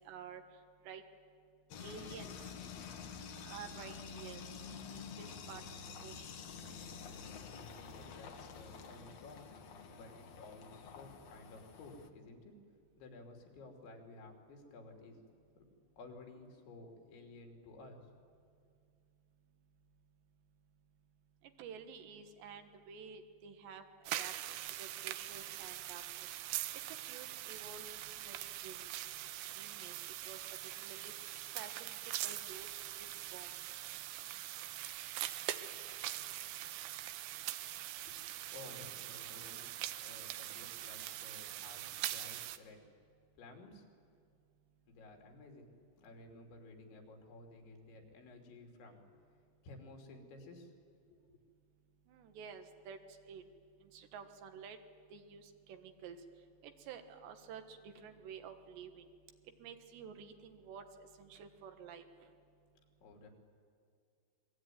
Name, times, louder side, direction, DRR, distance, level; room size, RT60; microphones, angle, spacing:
voice 1, 0.1-0.4 0.8-1.0 1.8-2.4 3.4-5.6 6.0-6.3 21.6-23.8 24.2-24.3 24.8-26.0 26.9-28.9 29.5-30.0 30.3-31.3 31.6-33.5 52.1-53.0 53.3-53.4 53.9-54.8 55.1-56.2 56.6-59.1 59.6-60.9 61.2-62.1, right 7 dB, 75° right, 7 dB, 3.6 m, -51 dB
sound 1, 1.7-12.1, left 6 dB, 65° left, 1.6 m, -49 dB
voice 2, 7.9-9.4 9.9-12.5 13.0-15.2 15.6-15.7 16.0-18.1 38.0-38.1 38.5-42.8 43.4-43.8 44.9-45.7 46.0-49.0 49.6-50.7 51.1-51.4 63.0-63.3, left 2 dB, 85° left, 2 dB, 5.4 m, -54 dB
sound 2, 24.1-42.6, right 14 dB, 90° right, 3.2 m, -43 dB
28.5 x 22.0 x 9.4 m, 2.3 s
omnidirectional pair, 5.1 m